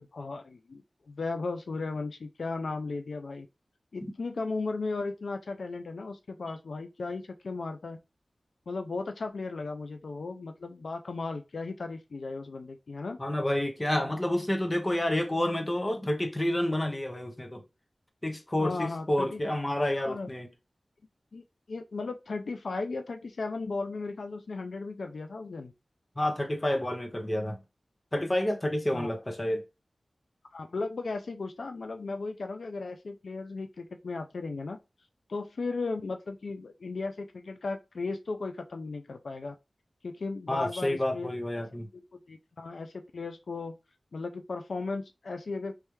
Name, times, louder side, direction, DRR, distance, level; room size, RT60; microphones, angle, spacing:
voice 1, 0.0-3.5 3.9-8.0 8.7-13.2 18.6-19.4 20.0-20.3 21.3-25.7 28.9-29.1 30.5-34.8 35.3-39.5 40.0-41.6 41.9-43.7 44.1-45.7, left 3 dB, 85° left, 0.4 m, -36 dB
voice 2, 13.2-17.6 18.2-20.5 26.2-27.6 28.1-29.6 40.5-41.9, left 1 dB, 25° left, 0.7 m, -29 dB
3.4 x 3.2 x 3.1 m
wide cardioid pair, 85°, 0 cm